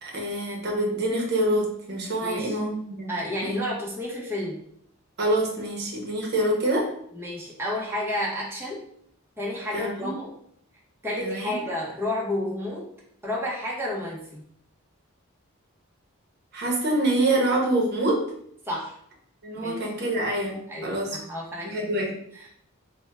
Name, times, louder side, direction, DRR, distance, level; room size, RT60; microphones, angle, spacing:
voice 1, 0.0-3.1 3.4-3.6 5.2-6.9 9.7-10.2 11.2-11.5 16.5-18.3 19.4-21.2 21.6-22.2, right 1 dB, 50° right, -1 dB, 0.8 m, -26 dB
voice 2, 2.2-2.6 3.1-4.6 7.1-8.8 9.4-10.3 11.0-12.9 13.2-14.5 18.7-18.9 19.5-19.8 20.7-21.9, left 1 dB, 10° right, -5 dB, 0.8 m, -31 dB
4.3 x 2.1 x 3.3 m, 0.68 s
head